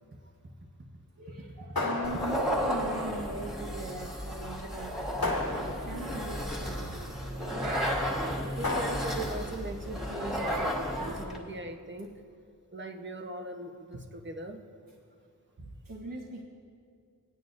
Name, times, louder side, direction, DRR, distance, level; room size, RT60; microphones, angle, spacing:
voice 1, 1.2-7.2 7.6-8.2 10.3-11.2 15.6-16.4, right 2 dB, 70° right, -2 dB, 1.3 m, -40 dB
sound 1, 1.8-2.8 5.2-6.2 8.6-9.5, left 2 dB, 80° left, 2.3 m, -33 dB
sound 2, 2.0-11.4, equal, ahead, 2.1 m, -33 dB
voice 2, 8.5-12.2 12.7-14.6, right 2 dB, 30° right, 4 dB, 1.1 m, -40 dB
20.5 x 9.6 x 2.7 m, 2.2 s
wide cardioid pair, 55°, 35 cm